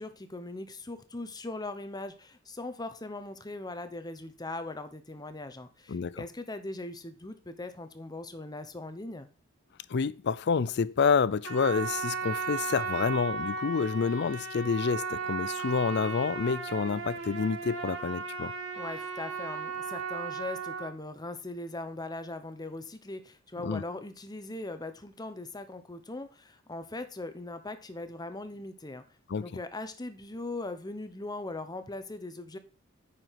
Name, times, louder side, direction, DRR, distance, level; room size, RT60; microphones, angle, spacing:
voice 1, 0.0-9.3 18.8-29.0 29.4-32.6, left 2 dB, 20° left, 0.9 m, -40 dB
voice 2, 5.9-6.3 9.9-18.5 23.6-23.8 29.3-29.5, left 5 dB, 55° left, 0.5 m, -28 dB
Trumpet, 11.4-20.9, right 4 dB, 70° right, 1.8 m, -36 dB
9.2 x 5.0 x 5.8 m
head